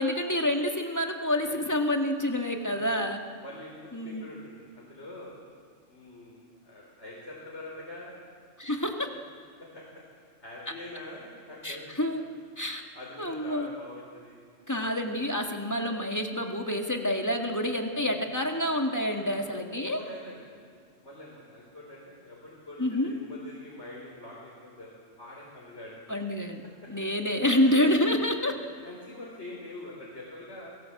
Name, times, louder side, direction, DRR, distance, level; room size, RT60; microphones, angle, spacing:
voice 1, 0.0-3.2 3.9-4.3 8.6-9.1 11.6-12.2 12.6-12.8 13.2-13.7 14.7-20.0 22.8-23.1 26.1-26.6 26.9-28.5, left 1 dB, 15° left, 3 dB, 1.8 m, -28 dB
voice 2, 1.4-1.8 2.6-2.9 3.4-3.8 4.0-5.3 5.9-8.2 9.7-9.8 10.4-11.9 12.9-14.4 15.0-15.2 17.9-18.3 19.1-20.5 21.0-25.9 26.8-26.9 27.7-28.1 28.7-30.7, left 1 dB, 65° left, -4 dB, 4.8 m, -45 dB
29.0 x 17.5 x 7.8 m, 2.2 s
omnidirectional pair, 1.3 m